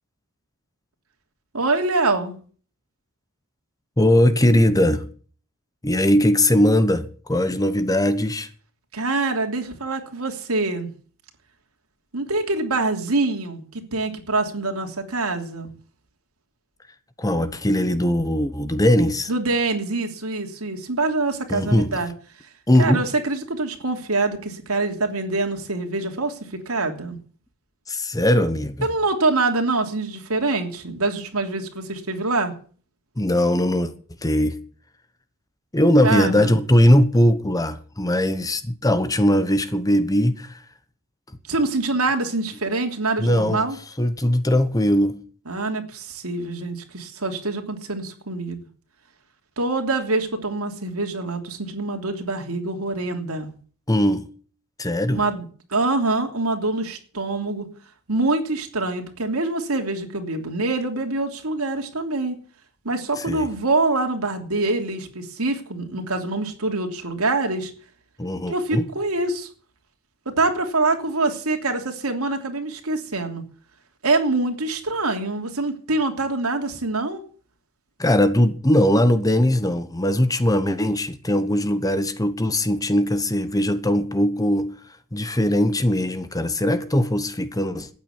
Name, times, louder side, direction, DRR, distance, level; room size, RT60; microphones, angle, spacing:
voice 1, 1.5-2.3 8.9-10.9 12.1-15.7 19.3-22.1 22.8-27.2 28.8-32.5 36.0-36.5 41.5-43.8 45.5-48.6 49.6-53.5 55.1-57.6 58.1-62.4 62.8-67.7 68.5-69.5 70.2-73.4 74.0-77.2, right 3 dB, 80° right, 3.1 m, -25 dB
voice 2, 4.0-5.1 5.8-8.5 17.2-19.3 21.5-22.0 22.7-23.0 27.9-28.9 33.2-33.9 34.2-34.6 35.7-40.6 43.2-43.7 44.0-45.2 53.9-54.3 54.8-55.2 63.2-63.5 68.2-68.9 78.0-84.7 85.1-87.9, left 1 dB, 15° left, 1.1 m, -20 dB
13.5 x 9.3 x 8.3 m
head